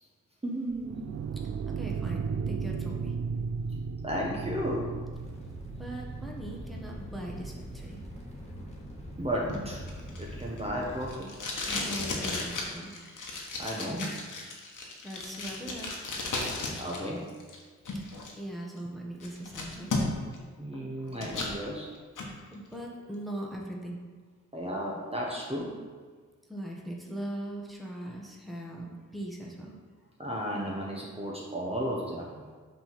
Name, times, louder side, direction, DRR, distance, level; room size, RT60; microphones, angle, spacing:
voice 1, 0.4-1.1 4.0-4.9 9.2-9.8 10.2-11.3 13.6-14.1 16.8-17.2 20.6-21.9 24.5-25.8 30.2-32.4, equal, 20° right, -3 dB, 1.2 m, -33 dB
sound 1, 0.7-8.0, right 5 dB, 50° right, 0.5 m, -36 dB
voice 2, 1.8-3.1 5.8-8.0 11.7-12.9 15.0-15.9 18.4-19.9 22.5-24.0 26.5-29.8, right 1 dB, ahead, -2 dB, 1.3 m, -40 dB
sound 2, 5.1-11.1, equal, 20° left, 1.7 m, -43 dB
Packing tape duct tape, 9.5-17.0 17.3-18.3 18.8-18.9 19.2-20.4 20.7-21.5 22.0-22.3, left 3 dB, 75° left, 1.2 m, -35 dB
5.8 x 3.6 x 5.8 m, 1.5 s
cardioid pair, 50°, 31 cm